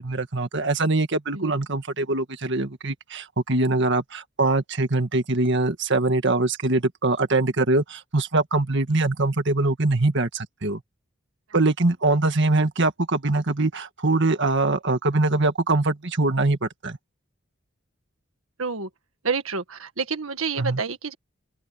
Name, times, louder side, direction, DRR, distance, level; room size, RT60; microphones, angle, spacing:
voice 1, 0.0-10.8 11.5-17.0 20.6-20.8, right 2 dB, 60° right, 1.8 m, -23 dB
voice 2, 18.6-18.9 19.2-21.1, right 5 dB, 85° right, 1.7 m, -28 dB
open air
head